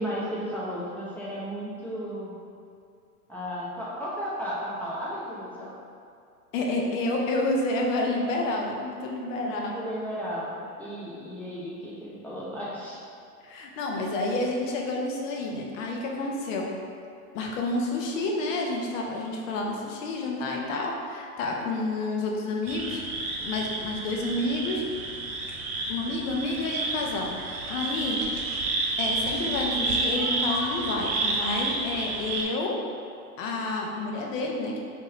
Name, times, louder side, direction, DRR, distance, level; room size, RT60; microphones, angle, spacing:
voice 1, 0.0-2.3 3.3-5.7 9.4-13.0 13.9-14.1, equal, 5° left, -8 dB, 0.6 m, -34 dB
voice 2, 6.5-9.6 13.4-16.7 17.3-23.0 23.4-24.8 25.9-27.4 27.7-28.2 29.0-32.8 33.4-34.8, left 2 dB, 60° left, 0 dB, 0.7 m, -29 dB
sound 1, 22.7-32.4, right 2 dB, 40° right, 0.5 m, -30 dB
3.8 x 2.8 x 2.5 m, 2.4 s
hypercardioid pair, 100°, 45 cm